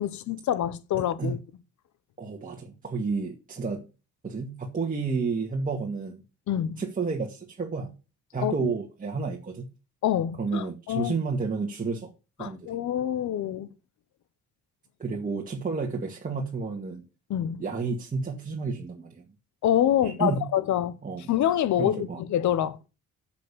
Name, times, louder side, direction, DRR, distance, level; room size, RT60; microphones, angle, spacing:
voice 1, 0.0-1.4 6.5-6.8 8.4-8.7 10.0-11.1 12.4-13.7 17.3-17.6 19.6-20.9 21.3-22.8, left 11 dB, 70° left, 1.0 m, -26 dB
voice 2, 1.0-1.3 2.2-3.9 4.2-6.2 6.8-7.9 8.3-9.7 10.4-12.1 12.4-12.7 15.0-17.0 17.6-19.2 20.0-20.4 21.0-21.3 21.8-22.2, right 4 dB, 25° right, 2.0 m, -31 dB
7.6 x 7.3 x 6.9 m
cardioid pair, 90°, 30 cm